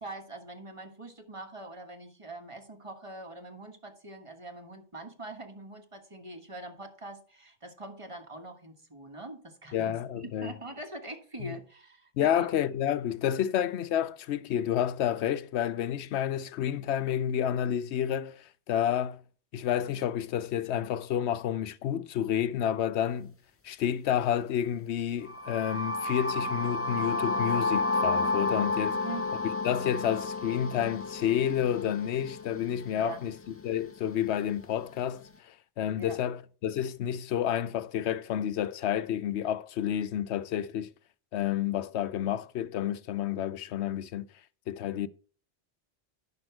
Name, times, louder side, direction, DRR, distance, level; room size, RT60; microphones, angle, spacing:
voice 1, 0.0-12.5 28.9-29.3 32.9-33.2 36.0-36.2, right 2 dB, 25° right, 1.5 m, -43 dB
voice 2, 9.7-10.5 11.4-11.6 12.2-19.2 19.5-23.3 23.6-29.0 29.6-33.3 33.6-40.9 41.3-44.3 44.7-45.1, left 10 dB, 75° left, 0.9 m, -30 dB
sound 1, 25.3-33.2, left 2 dB, 15° left, 0.5 m, -31 dB
10.5 x 6.2 x 4.6 m
omnidirectional pair, 1.2 m